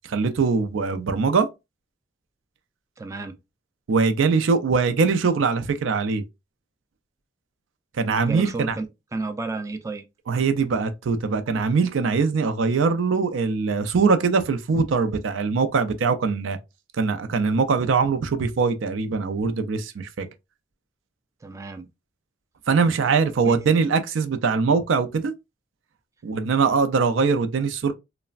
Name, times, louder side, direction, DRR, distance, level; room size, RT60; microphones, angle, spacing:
voice 1, 0.1-1.5 3.9-6.2 8.0-8.8 10.3-16.6 17.0-20.3 22.7-25.3 26.2-27.9, right 4 dB, 85° right, 0.4 m, -22 dB
voice 2, 3.0-3.4 8.2-8.9 9.1-10.0 21.4-21.9 23.4-23.6, right 3 dB, 15° right, 0.3 m, -31 dB
3.2 x 2.0 x 2.4 m
head